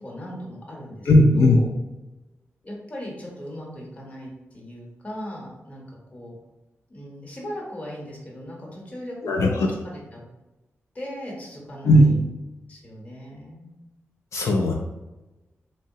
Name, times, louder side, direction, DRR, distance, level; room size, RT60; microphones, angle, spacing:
voice 1, 0.0-1.7 2.6-5.8 6.1-6.4 6.9-10.2 10.9-12.2 12.7-13.8, equal, 30° left, -3 dB, 0.9 m, -37 dB
voice 2, 1.1-1.6 9.2-9.7 11.8-12.1 14.3-14.7, left 1 dB, 80° left, 0 dB, 0.4 m, -17 dB
3.7 x 2.0 x 2.6 m, 1.1 s
wide cardioid pair, 135°, 5 cm